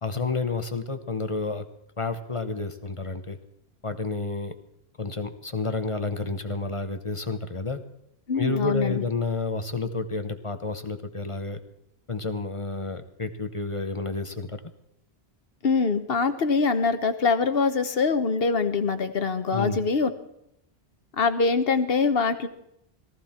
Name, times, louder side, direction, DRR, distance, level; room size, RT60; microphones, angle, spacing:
voice 1, 0.0-1.6 2.0-3.4 3.8-4.6 5.0-7.8 8.3-11.6 12.1-14.6 19.5-19.8, left 3 dB, 30° left, 9 dB, 1.0 m, -30 dB
voice 2, 8.3-9.0 15.6-20.1 21.1-22.5, left 4 dB, 65° left, 9 dB, 1.3 m, -23 dB
18.5 x 14.5 x 4.4 m, 0.78 s
omnidirectional pair, 1.1 m